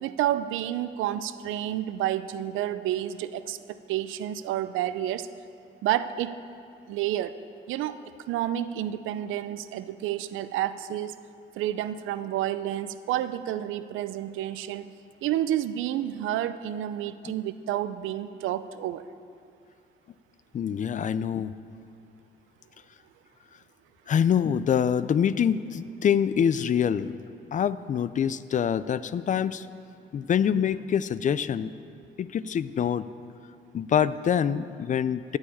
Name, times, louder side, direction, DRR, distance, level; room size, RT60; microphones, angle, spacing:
voice 1, 0.0-5.3 5.8-6.4 6.9-7.4 7.7-8.0 8.3-11.2 11.6-14.9 15.2-19.0, right 12 dB, 90° right, 13 dB, 0.5 m, -30 dB
voice 2, 20.5-21.5 24.1-27.1 27.5-29.7 30.1-31.7 32.2-33.1 33.7-35.4, left 8 dB, 40° left, 16 dB, 0.4 m, -25 dB
13.5 x 4.8 x 8.7 m, 2.5 s
cardioid pair, 90°, 20 cm